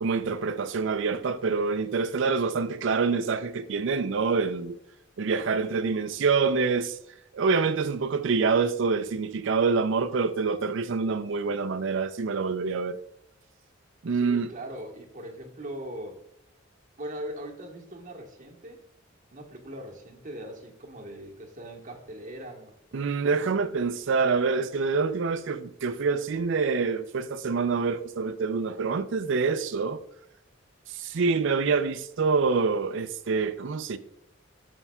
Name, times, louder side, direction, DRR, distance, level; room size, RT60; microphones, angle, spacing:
voice 1, 0.0-4.8 5.2-7.0 7.3-13.0 14.0-14.5 22.9-30.0 30.9-34.0, right 4 dB, 65° right, 0.4 m, -26 dB
voice 2, 14.1-16.2 17.0-18.8 19.3-23.3, right 1 dB, 40° right, 1.4 m, -40 dB
13.0 x 5.4 x 2.3 m
head